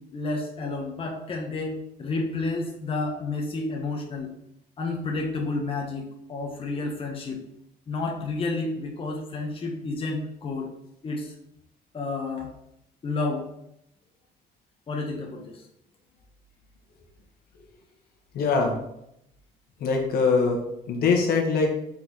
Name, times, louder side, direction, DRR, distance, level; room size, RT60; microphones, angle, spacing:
voice 1, 0.1-4.3 4.8-7.4 7.9-10.7 11.0-11.3 11.9-12.5 13.0-13.5 14.9-15.6, left 3 dB, 30° left, 0 dB, 1.2 m, -30 dB
voice 2, 18.3-18.8 19.8-20.6 20.9-21.7, left 4 dB, 65° left, 1 dB, 1.5 m, -22 dB
5.7 x 4.2 x 4.7 m, 0.79 s
cardioid pair, 110°, 17 cm